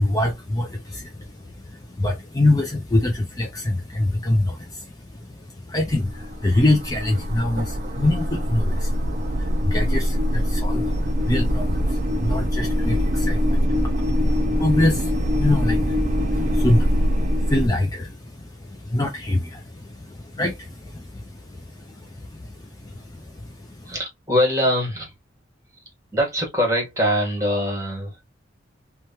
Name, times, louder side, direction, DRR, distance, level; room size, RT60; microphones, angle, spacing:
voice 1, 0.0-23.9, left 1 dB, 20° left, 0.5 m, -25 dB
sound 1, 5.9-17.7, equal, 45° right, 0.4 m, -23 dB
voice 2, 23.8-25.1 26.1-28.2, equal, 20° right, 1.5 m, -23 dB
3.1 x 2.3 x 2.7 m
head